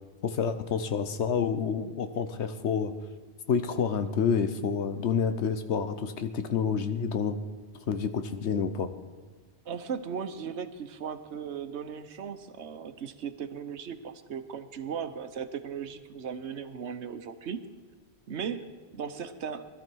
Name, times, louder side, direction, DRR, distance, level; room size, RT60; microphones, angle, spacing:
voice 1, 0.2-2.9 3.5-7.4 7.9-8.9, left 6 dB, 85° left, 9 dB, 1.2 m, -28 dB
voice 2, 9.7-17.6 18.3-18.7 18.9-19.7, right 7 dB, 85° right, 10 dB, 1.2 m, -37 dB
20.0 x 12.5 x 4.6 m, 1.4 s
omnidirectional pair, 1.1 m